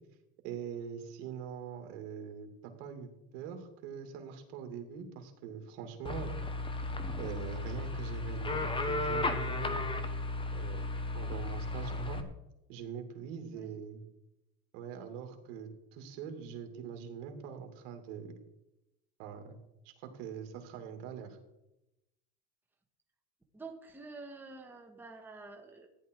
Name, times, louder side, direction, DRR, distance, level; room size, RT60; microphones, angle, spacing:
voice 1, 0.4-6.4 7.2-9.9 10.5-10.9 11.1-12.2 12.7-14.0 14.7-18.3 19.2-19.6 20.0-21.4, right 7 dB, 70° right, 5 dB, 2.6 m, -43 dB
sound 1, 6.0-12.2, left 2 dB, 15° left, 1.2 m, -34 dB
voice 2, 23.5-25.9, right 3 dB, 5° right, 1 dB, 1.4 m, -48 dB
14.5 x 10.5 x 4.7 m, 0.92 s
supercardioid pair, 135°, 37 cm